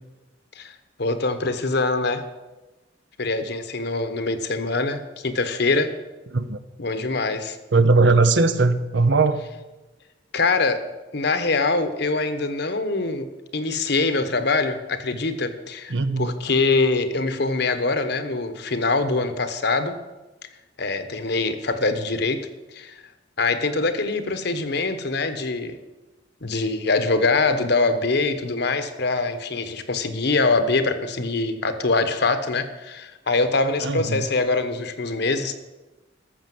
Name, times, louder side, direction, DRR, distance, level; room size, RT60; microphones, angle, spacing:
voice 1, 1.0-2.2 3.2-5.9 6.8-7.6 10.3-10.8 11.1-20.0 20.8-22.4 22.7-23.0 23.4-25.8 26.4-35.5, left 3 dB, 60° left, 9 dB, 1.1 m, -23 dB
voice 2, 7.7-9.4 15.9-16.3 33.8-34.3, right 3 dB, 70° right, 11 dB, 0.8 m, -19 dB
14.0 x 6.5 x 7.7 m, 1.1 s
head